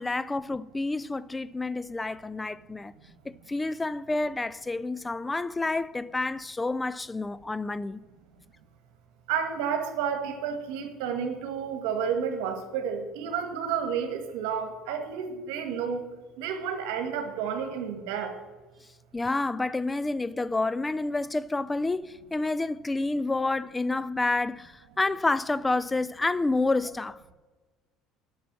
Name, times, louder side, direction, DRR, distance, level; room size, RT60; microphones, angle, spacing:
voice 1, 0.0-2.9 3.3-8.0 19.1-27.3, left 2 dB, 15° left, 0.3 m, -29 dB
voice 2, 9.3-16.1 16.4-18.4, right 7 dB, 85° right, 1.6 m, -31 dB
9.1 x 6.2 x 7.4 m
supercardioid pair, 110°, 0 cm